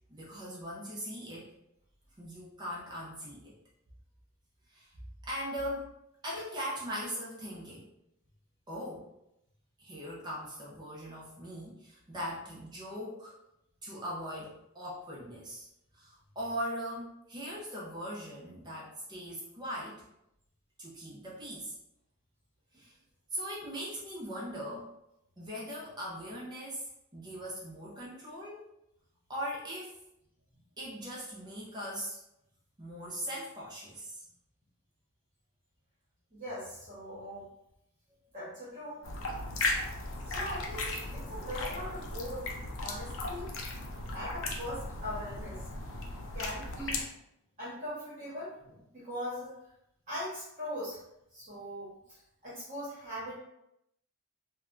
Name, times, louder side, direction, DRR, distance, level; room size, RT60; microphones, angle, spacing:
voice 1, 0.1-1.5 2.2-3.6 4.7-4.9 5.3-5.9 6.2-7.9 8.7-9.1 9.8-13.3 13.8-15.7 15.9-20.0 20.8-21.7 22.7-23.0 23.3-24.9 25.4-26.8 27.1-28.6 29.3-30.0 30.8-32.2 32.8-34.2, equal, 20° right, -5 dB, 0.5 m, -40 dB
voice 2, 36.3-37.5 38.3-39.2 40.2-42.5 42.8-43.5 44.1-45.6 46.3-47.0 47.6-49.5 50.1-51.0 51.3-52.2 52.4-53.3, equal, 35° right, -10 dB, 1.0 m, -40 dB
sound 1, 39.0-47.0, left 2 dB, 60° left, 0.4 m, -36 dB
3.3 x 2.1 x 2.4 m, 0.82 s
head